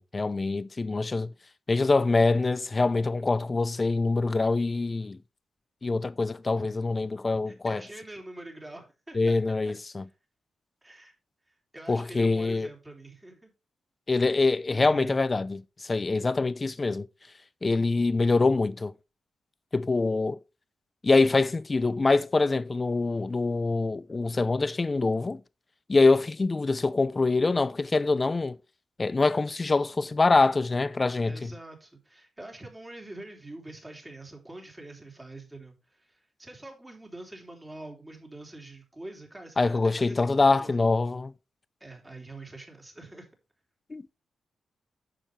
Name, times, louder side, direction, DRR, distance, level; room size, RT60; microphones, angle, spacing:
voice 1, 0.0-1.3 1.7-5.2 5.8-7.8 9.1-10.0 11.9-12.7 14.1-17.1 17.6-18.9 19.7-20.4 21.0-25.4 25.9-28.6 29.0-31.5 39.6-41.3 43.9-44.1, left 3 dB, 30° left, 0.7 m, -24 dB
voice 2, 7.5-9.7 10.8-11.1 11.7-13.5 14.7-15.2 31.2-40.7 41.8-43.3, right 2 dB, 15° right, 3.6 m, -45 dB
10.0 x 7.0 x 3.3 m
cardioid pair, 75°, 0 cm